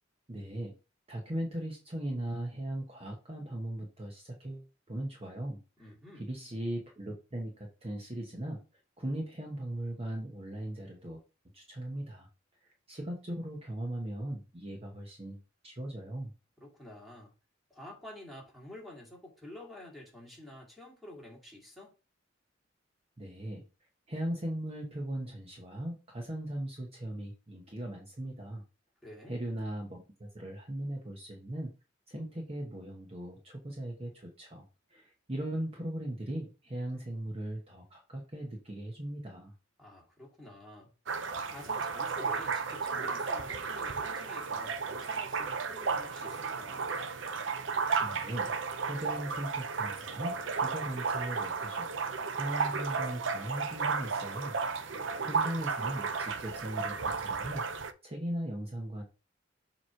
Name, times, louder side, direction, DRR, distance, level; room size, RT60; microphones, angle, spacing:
voice 1, 0.3-0.7 1.1-8.6 9.0-11.2 11.5-12.3 12.6-16.3 23.2-23.6 24.1-28.6 29.3-31.7 32.1-39.5 48.0-48.5 48.8-51.9 52.3-54.6 55.2-57.7 58.0-59.0, right 1 dB, 30° right, 1.0 m, -38 dB
voice 2, 5.8-6.3 16.6-17.3 17.7-21.9 29.0-29.4 39.8-40.9 41.4-46.8 54.9-55.5, left 1 dB, ahead, 2.2 m, -49 dB
sound 1, 41.1-57.9, right 5 dB, 70° right, 0.6 m, -34 dB
7.1 x 3.0 x 4.5 m
head